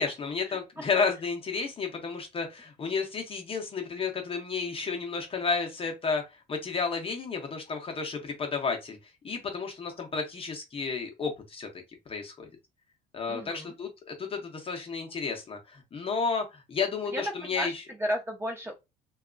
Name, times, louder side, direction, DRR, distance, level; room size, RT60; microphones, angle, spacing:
voice 1, 0.0-9.0 9.2-11.7 12.1-12.5 13.1-17.8, left 5 dB, 35° left, 0.7 m, -32 dB
voice 2, 13.3-13.7 17.1-18.8, equal, 15° right, 0.8 m, -34 dB
2.7 x 2.3 x 2.4 m
cardioid pair, 110°, 17 cm